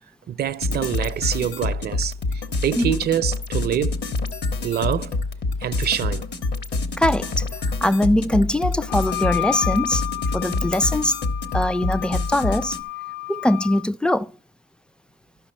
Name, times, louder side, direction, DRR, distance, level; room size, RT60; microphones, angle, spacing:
voice 1, 0.3-4.0 4.6-5.2 5.6-6.3, right 10 dB, 55° right, 0.5 m, -25 dB
sound 1, 0.6-12.8, left 3 dB, 60° left, 1.2 m, -27 dB
voice 2, 7.0-7.5 7.8-10.0 10.3-11.2 11.5-12.8 13.3-14.3, left 1 dB, 5° left, 0.3 m, -21 dB
Wind instrument woodwind instrument, 8.9-13.8, left 20 dB, 85° left, 0.4 m, -31 dB
12.5 x 5.7 x 4.3 m
cardioid pair, 90°, 20 cm